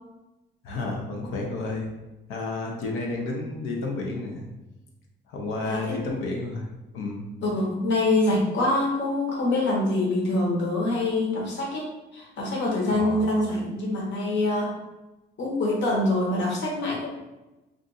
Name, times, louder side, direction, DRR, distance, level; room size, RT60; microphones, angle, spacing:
voice 1, 0.6-1.9 2.3-4.5 5.3-6.7 6.9-7.2 13.0-13.2, left 2 dB, 90° left, -1 dB, 0.7 m, -31 dB
voice 2, 5.6-6.0 7.4-14.7 15.4-17.1, left 2 dB, 65° left, -3 dB, 1.1 m, -25 dB
2.5 x 2.5 x 3.9 m, 1.0 s
cardioid pair, 90°, 20 cm